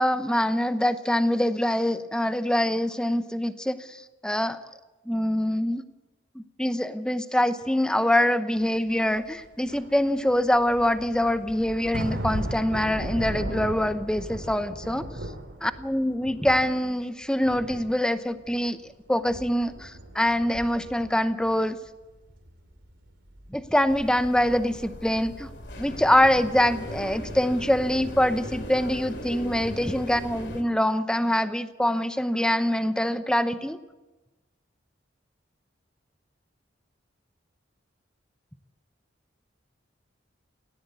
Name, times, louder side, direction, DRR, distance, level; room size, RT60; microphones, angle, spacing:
voice 1, 0.0-4.6 5.1-5.8 6.3-15.1 15.6-21.8 23.5-25.5 25.8-33.8, left 1 dB, 5° left, 11 dB, 0.8 m, -24 dB
sound 1, 8.9-9.0 9.4-17.1 17.4-18.9 19.2-21.8 22.1-26.9 27.2-27.4, right 1 dB, 75° right, 2.9 m, -38 dB
sound 2, 23.9-30.6, equal, 65° left, 2.9 m, -38 dB
18.5 x 17.0 x 8.4 m, 1.1 s
head